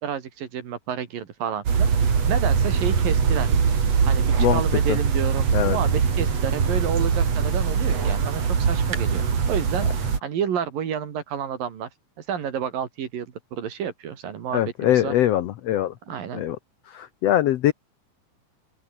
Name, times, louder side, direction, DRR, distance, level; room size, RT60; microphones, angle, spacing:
voice 1, 0.0-1.9 2.3-3.5 4.1-11.9 12.2-15.1 16.1-16.5, right 8 dB, 75° right, 4.2 m, -30 dB
sound 1, 1.7-10.2, right 6 dB, 50° right, 3.9 m, -22 dB
voice 2, 14.5-15.9 16.3-16.6 16.9-17.7, left 12 dB, 85° left, 1.4 m, -22 dB
open air
omnidirectional pair, 4.0 m